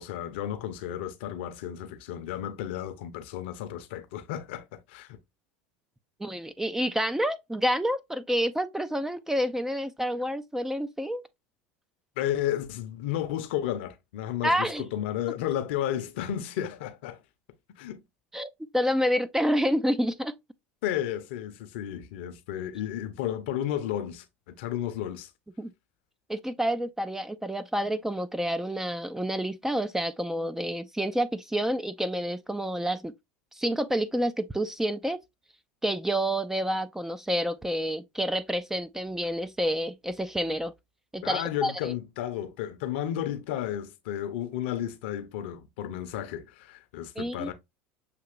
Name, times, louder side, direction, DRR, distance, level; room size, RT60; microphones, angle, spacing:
voice 1, 0.0-5.2 12.2-17.2 17.8-18.0 20.8-25.3 41.2-47.5, left 11 dB, 70° left, 0.7 m, -33 dB
voice 2, 6.2-11.2 14.4-14.8 18.3-20.4 25.6-25.7 26.3-33.1 33.5-35.2 35.8-40.7 41.1-41.9 47.2-47.5, equal, 5° right, 0.4 m, -28 dB
6.7 x 2.9 x 2.5 m
hypercardioid pair, 80°, 6 cm